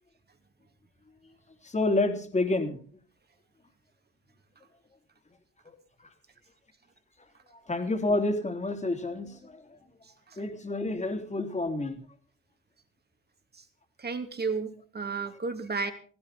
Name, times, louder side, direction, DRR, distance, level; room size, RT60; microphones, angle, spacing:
voice 1, 1.6-2.8 7.7-9.8 10.4-12.0, left 2 dB, 25° left, 6 dB, 3.2 m, -29 dB
voice 2, 14.0-15.9, right 4 dB, 35° right, 7 dB, 2.8 m, -33 dB
17.0 x 16.0 x 4.2 m, 0.41 s
cardioid pair, 90°, 30 cm